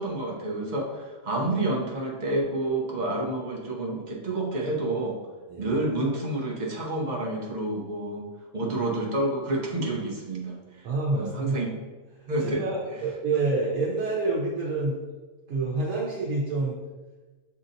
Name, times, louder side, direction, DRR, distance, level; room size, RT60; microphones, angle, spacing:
voice 1, 0.0-5.2 5.6-8.2 8.5-10.6 11.1-11.7 12.3-12.6, right 2 dB, 40° right, -1 dB, 0.8 m, -29 dB
voice 2, 10.8-11.6 12.2-15.0 15.5-16.7, right 3 dB, 90° right, -4 dB, 1.2 m, -28 dB
7.0 x 2.8 x 2.6 m, 1.3 s
omnidirectional pair, 1.5 m